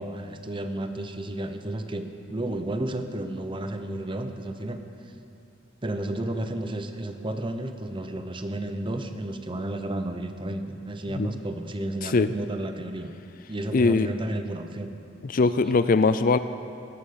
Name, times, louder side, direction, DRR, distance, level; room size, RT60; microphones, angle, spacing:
voice 1, 0.0-4.8 5.8-13.1 13.5-14.9, right 1 dB, 25° right, 7 dB, 0.9 m, -32 dB
voice 2, 13.7-14.1 15.2-16.4, left 3 dB, 45° left, 12 dB, 0.4 m, -21 dB
17.5 x 9.2 x 6.9 m, 2.5 s
head